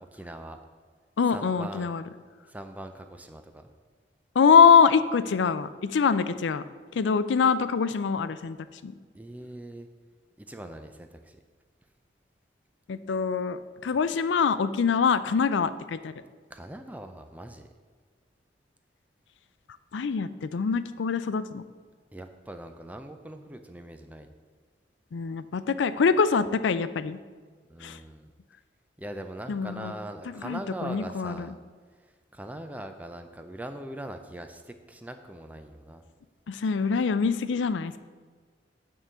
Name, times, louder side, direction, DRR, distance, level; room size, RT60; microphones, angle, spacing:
voice 1, 0.1-0.6 1.3-1.9 2.5-3.7 9.1-9.9 10.4-11.4 16.5-17.7 22.1-24.3 27.7-28.3 29.0-31.6 32.0-36.0, right 1 dB, 10° right, 7 dB, 0.4 m, -41 dB
voice 2, 1.2-2.0 4.4-6.6 6.9-8.6 8.8-8.9 12.9-16.1 19.9-21.6 25.1-27.2 27.8-28.0 29.5-29.9 30.4-31.5 36.5-38.0, left 6 dB, 90° left, 13 dB, 0.4 m, -24 dB
8.9 x 3.8 x 6.7 m, 1.5 s
head